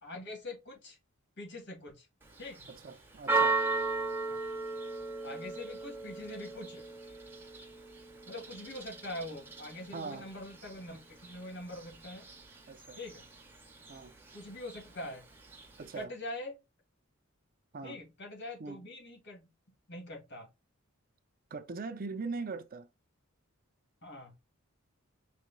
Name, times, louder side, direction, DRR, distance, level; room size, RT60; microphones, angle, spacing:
voice 1, 0.0-1.0 1.4-2.1 2.4-2.7 4.3-4.4 5.2-6.8 8.3-12.3 13.0-13.2 14.3-15.2 15.9-16.5 17.8-19.5 19.9-20.5 24.0-24.3, left 1 dB, 55° left, 2.4 m, -43 dB
Church bell, 2.2-16.0, right 3 dB, 10° right, 1.2 m, -38 dB
voice 2, 2.7-3.6 9.9-10.3 12.7-13.0 13.9-14.1 15.8-16.2 17.7-18.0 18.6-18.8 21.5-22.9, right 4 dB, 45° right, 0.5 m, -41 dB
5.2 x 4.2 x 2.2 m
head